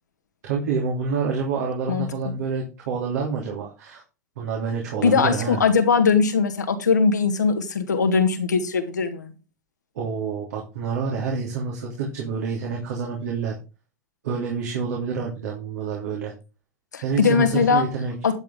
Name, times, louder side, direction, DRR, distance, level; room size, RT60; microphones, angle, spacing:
voice 1, 0.4-4.0 4.4-5.6 9.9-13.5 14.2-16.3 17.0-18.1, right 5 dB, 70° right, 3.2 m, -27 dB
voice 2, 5.0-9.3 16.9-17.9 18.2-18.4, left 5 dB, 85° left, 1.9 m, -20 dB
11.5 x 7.8 x 3.8 m
hypercardioid pair, 95°, 9 cm